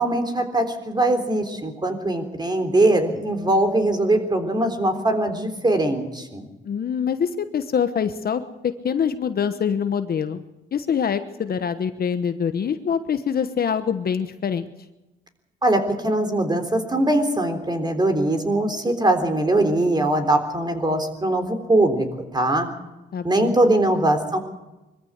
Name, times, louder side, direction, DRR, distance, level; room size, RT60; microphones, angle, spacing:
voice 1, 0.0-6.5 15.6-22.1 22.3-22.7 23.2-24.4, right 1 dB, 20° right, 6 dB, 3.6 m, -21 dB
voice 2, 6.6-10.4 10.7-14.7 23.1-23.6, left 7 dB, 50° left, 10 dB, 1.2 m, -25 dB
22.5 x 14.0 x 8.2 m, 1.1 s
cardioid pair, 90°, 20 cm